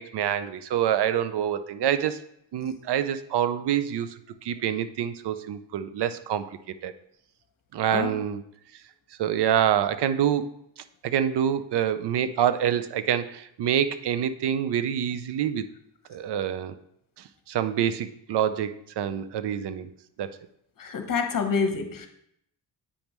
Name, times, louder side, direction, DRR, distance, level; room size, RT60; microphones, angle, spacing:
voice 1, 0.0-2.2 2.5-6.9 7.7-8.4 9.2-10.5 11.0-15.6 16.1-16.8 17.5-19.9 20.2-20.4, right 9 dB, 60° right, 12 dB, 0.6 m, -26 dB
voice 2, 20.8-22.1, left 5 dB, 45° left, 6 dB, 1.0 m, -27 dB
8.5 x 5.2 x 3.0 m, 0.74 s
cardioid pair, 100°, 47 cm